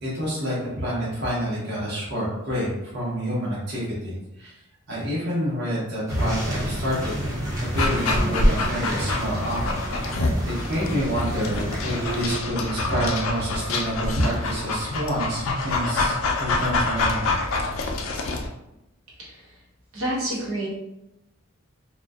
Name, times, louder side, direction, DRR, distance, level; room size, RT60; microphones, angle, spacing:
voice 1, 0.0-4.5 4.9-7.2 7.7-9.8 10.4-17.3, equal, 50° right, -7 dB, 0.7 m, -28 dB
sound 1, 6.1-12.4, right 1 dB, 15° right, 0.4 m, -30 dB
Dog, 7.7-18.5, left 2 dB, 75° left, 0.4 m, -26 dB
voice 2, 19.2-19.6 19.9-20.7, right 1 dB, 85° right, -5 dB, 0.9 m, -29 dB
2.5 x 2.1 x 2.3 m, 0.91 s
head